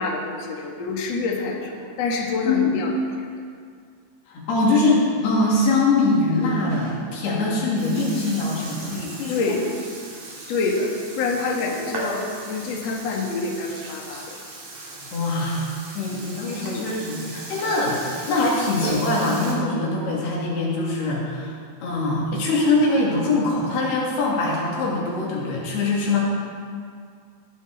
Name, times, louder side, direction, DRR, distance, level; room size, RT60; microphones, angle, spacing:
voice 1, 0.0-2.9 9.3-9.6 10.5-14.2 16.6-16.9, left 3 dB, 50° left, -1 dB, 2.3 m, -27 dB
voice 2, 2.5-2.8 4.3-9.5 15.0-18.0 18.3-26.2, left 2 dB, 80° left, -4 dB, 4.5 m, -23 dB
Burping eructation, 6.4-19.5, right 2 dB, 60° right, 4.2 m, -37 dB
19.5 x 11.0 x 4.2 m, 2.1 s
omnidirectional pair, 4.6 m